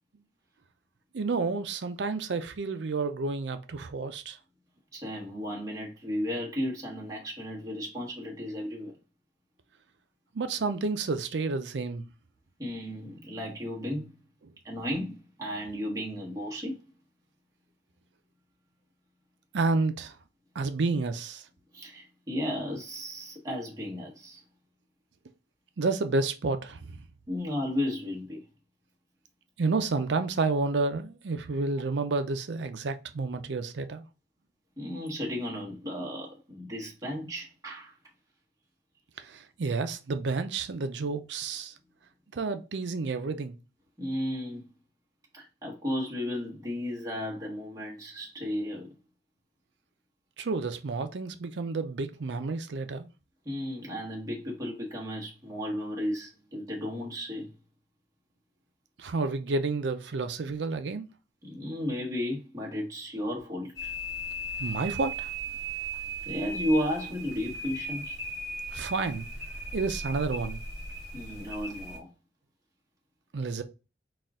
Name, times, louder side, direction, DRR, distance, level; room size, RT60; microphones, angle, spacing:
voice 1, 1.1-4.4 10.3-12.0 19.5-20.1 20.5-21.4 25.8-26.9 29.6-34.1 39.2-41.7 42.3-43.6 50.4-53.1 59.0-61.1 64.6-65.3 68.7-69.3 69.7-70.6 73.3-73.6, right 3 dB, 90° right, 0.5 m, -30 dB
voice 2, 4.9-9.0 12.6-14.1 14.6-16.8 21.7-24.4 27.3-28.4 34.8-37.9 44.0-44.6 45.3-48.9 53.4-57.5 61.4-63.9 66.2-68.2 71.1-72.1, left 1 dB, 20° right, 1.4 m, -34 dB
sound 1, 63.7-72.0, right 1 dB, 5° right, 2.1 m, -37 dB
4.2 x 2.4 x 3.6 m
head